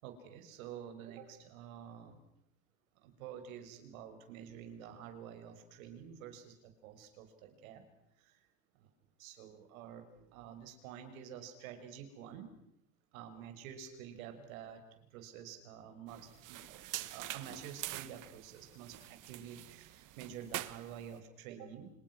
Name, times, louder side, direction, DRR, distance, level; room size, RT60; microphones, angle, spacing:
voice 1, 0.0-2.2 3.0-7.8 8.2-8.5 8.7-8.9 9.2-12.5 13.1-16.8 17.1-21.9, right 8 dB, 90° right, 7 dB, 6.3 m, -49 dB
sound 1, 16.1-21.2, right 15 dB, 50° right, 1.6 m, -45 dB
29.0 x 28.5 x 6.3 m, 0.78 s
supercardioid pair, 125°, 40 cm